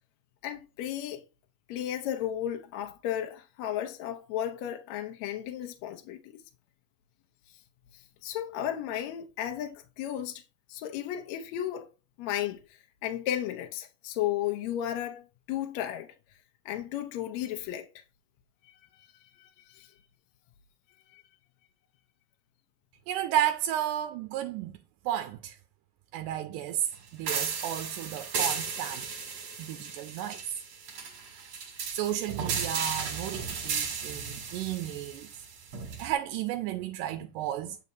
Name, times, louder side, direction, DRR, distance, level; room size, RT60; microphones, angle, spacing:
voice 1, 0.4-1.2 1.7-6.3 8.2-10.4 10.7-11.9 12.2-12.6 13.0-16.1 16.7-17.9 19.0-19.1 19.4-19.9 21.1-21.2, left 11 dB, 75° left, 1.8 m, -34 dB
voice 2, 23.1-24.8 25.1-25.6 26.1-26.9 27.1-29.2 29.6-30.4 31.3-31.5 31.9-35.3 36.0-37.8, right 11 dB, 85° right, 2.2 m, -33 dB
sound 1, 27.3-36.1, right 6 dB, 55° right, 2.5 m, -35 dB
7.5 x 5.4 x 2.6 m
omnidirectional pair, 3.7 m